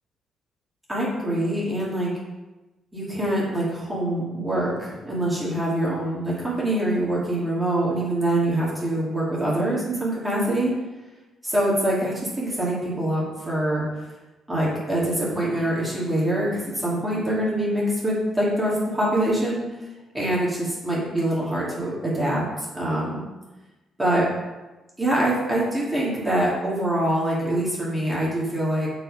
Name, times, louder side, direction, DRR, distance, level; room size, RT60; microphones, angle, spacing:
voice 1, 0.9-2.1 2.9-10.7 11.4-13.8 14.5-19.6 20.1-23.2 24.0-24.3 25.0-28.9, right 1 dB, 10° right, -7 dB, 2.5 m, -24 dB
6.4 x 4.8 x 4.9 m, 1.1 s
cardioid pair, 90°, 0 cm